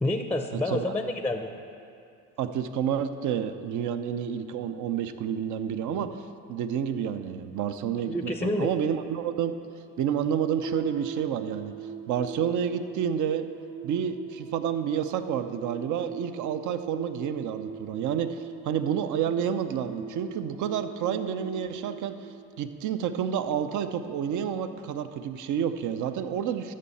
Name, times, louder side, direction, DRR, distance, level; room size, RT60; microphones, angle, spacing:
voice 1, 0.0-1.5 8.1-8.7, left 1 dB, 5° left, 6 dB, 0.6 m, -28 dB
voice 2, 0.5-0.9 2.4-6.1 6.5-9.6 10.0-11.7 12.1-13.5 13.8-26.7, right 8 dB, 55° right, 10 dB, 0.7 m, -29 dB
sound 1, 10.6-23.1, right 5 dB, 80° right, 1.5 m, -41 dB
12.5 x 6.4 x 4.2 m, 2.4 s
supercardioid pair, 80°, 36 cm